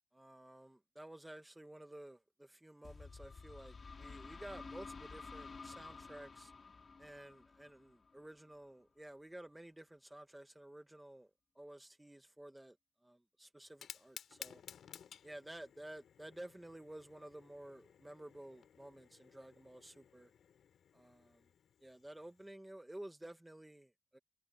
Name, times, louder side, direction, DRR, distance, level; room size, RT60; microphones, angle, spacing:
voice 1, 0.1-6.5 7.0-12.8 13.0-14.6 15.2-20.3 20.9-21.4 21.8-24.2, right 1 dB, 5° right, 1.3 m, -53 dB
sound 1, 2.8-8.5, left 4 dB, 30° left, 2.2 m, -52 dB
Fire, 13.6-22.5, left 8 dB, 60° left, 5.3 m, -57 dB
wide cardioid pair, 170°, 0 cm